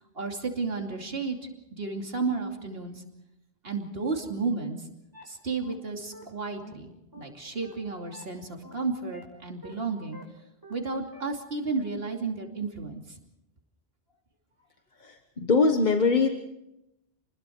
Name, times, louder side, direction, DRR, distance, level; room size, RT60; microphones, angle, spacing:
voice 1, 0.1-1.4 1.7-3.0 3.6-4.8 5.3-10.2 10.7-13.0, right 4 dB, 70° right, 2 dB, 3.0 m, -32 dB
sound 1, 5.1-5.2 5.6-5.7 6.1-6.2 6.6-6.7 7.1-7.2 7.6-7.7 8.1-8.2 8.6-8.7 9.1-9.2 9.6-9.7 10.1-10.2 10.6-10.7 11.1-11.2, left 1 dB, 20° right, 5.3 m, -46 dB
voice 2, 15.0-16.3, left 4 dB, 50° left, 4 dB, 1.5 m, -22 dB
29.5 x 21.0 x 4.6 m, 0.86 s
omnidirectional pair, 1.0 m